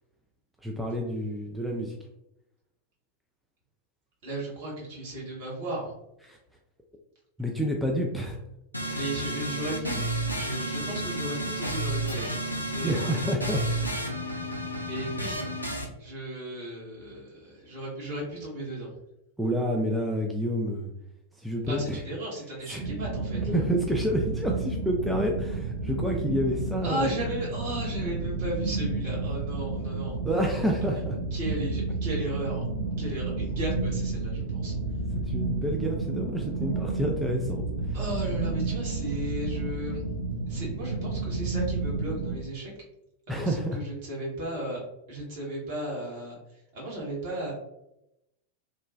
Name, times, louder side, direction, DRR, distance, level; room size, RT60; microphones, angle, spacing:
voice 1, 0.6-2.0 6.3-6.4 7.4-8.4 8.8-9.0 12.8-14.0 19.4-20.9 21.4-22.0 22.7-22.8 23.5-27.1 30.2-31.2 35.3-38.0 43.3-43.8, equal, 5° right, -1 dB, 0.3 m, -29 dB
voice 2, 4.2-5.9 8.9-12.4 12.6-13.2 14.8-15.7 16.0-18.9 21.7-23.6 26.8-30.1 30.9-31.0 31.3-32.6 33.0-34.7 37.9-40.0 40.5-42.7 43.3-47.5, right 1 dB, 50° right, -4 dB, 1.3 m, -35 dB
sound 1, 8.7-15.8, right 1 dB, 85° left, 0.4 m, -31 dB
sound 2, 22.8-42.4, right 3 dB, 65° right, 0.9 m, -31 dB
3.0 x 2.2 x 2.4 m, 0.86 s
figure-of-eight pair, 90°, 0 cm